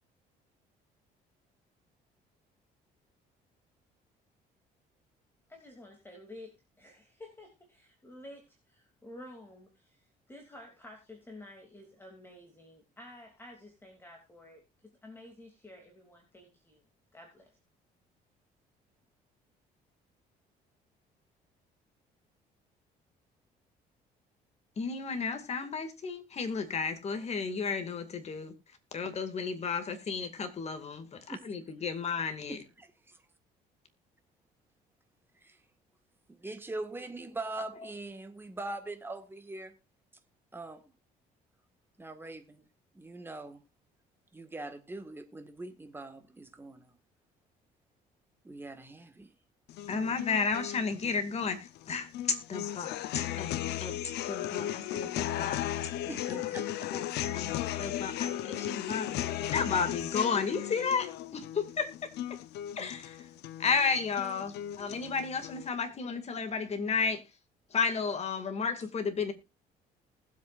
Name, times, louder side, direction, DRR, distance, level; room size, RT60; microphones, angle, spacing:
voice 1, 5.5-16.9 17.1-17.5, left 1 dB, 15° left, 2.8 m, -51 dB
voice 2, 24.8-28.5 28.9-32.6 49.9-53.5 53.8-53.9 54.3-55.6 56.3-56.5 56.9-57.0 57.3-57.5 57.8-59.2 59.5-61.1 61.3-61.9 62.8-63.2 63.6-67.2 67.7-69.4, left 5 dB, 40° left, 2.3 m, -33 dB
voice 3, 32.5-33.2 35.4-35.6 36.3-39.8 40.5-40.9 42.0-42.7 42.9-43.6 44.3-46.9 48.4-49.3 56.1-57.0, right 2 dB, 15° right, 1.8 m, -42 dB
sound 1, 49.7-65.7, left 12 dB, 80° left, 0.8 m, -36 dB
20.0 x 8.1 x 2.5 m
cardioid pair, 110°, 17 cm